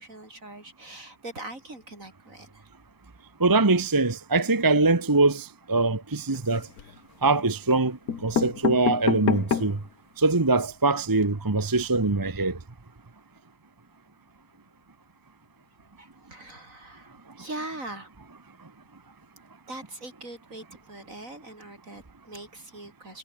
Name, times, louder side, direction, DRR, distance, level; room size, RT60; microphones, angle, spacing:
voice 1, 0.0-2.7 16.0-18.1 19.7-23.2, right 2 dB, 65° right, 7.0 m, -41 dB
voice 2, 3.4-6.7 7.2-9.8 10.2-12.6, right 3 dB, 15° right, 0.9 m, -23 dB
sound 1, 6.3-7.0 7.7-7.8 8.1-9.9 10.4-10.5 10.7-10.8 11.1-11.2, left 7 dB, 85° left, 2.1 m, -28 dB
omnidirectional pair, 1.5 m